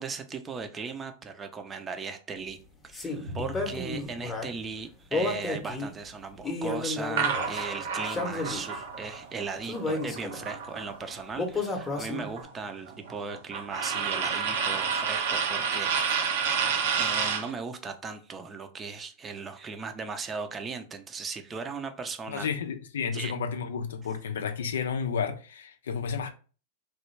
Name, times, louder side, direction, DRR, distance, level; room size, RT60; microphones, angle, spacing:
voice 1, 0.0-2.6 2.8-16.4 16.9-22.5 23.1-23.3, right 5 dB, 20° right, 0.6 m, -37 dB
sound 1, 2.9-4.5 5.1-5.9 6.4-7.6 8.0-8.8 9.6-10.5 11.4-12.4, left 2 dB, 15° left, 0.8 m, -32 dB
Drum, 3.3-5.6, left 5 dB, 85° right, 1.2 m, -43 dB
sound 2, 7.2-11.2 11.5-17.5, right 6 dB, 65° right, 0.7 m, -30 dB
voice 2, 22.3-26.3, left 6 dB, 75° left, 0.5 m, -31 dB
3.1 x 2.3 x 3.2 m
hypercardioid pair, 100°, 0 cm